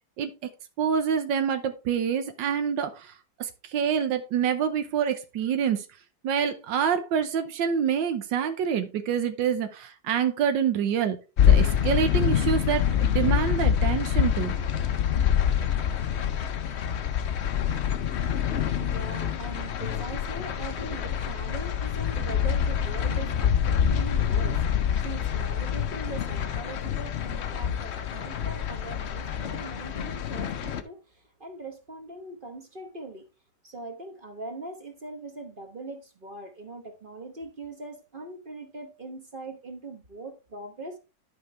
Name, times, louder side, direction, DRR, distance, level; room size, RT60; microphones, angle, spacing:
voice 1, 0.8-5.9 6.2-11.2 11.5-14.5, right 7 dB, 90° right, 1.5 m, -26 dB
sound 1, 11.4-30.8, left 9 dB, 60° left, 0.7 m, -26 dB
voice 2, 17.1-33.3 33.6-41.0, right 2 dB, 35° right, 1.0 m, -41 dB
11.5 x 5.2 x 3.3 m
omnidirectional pair, 1.9 m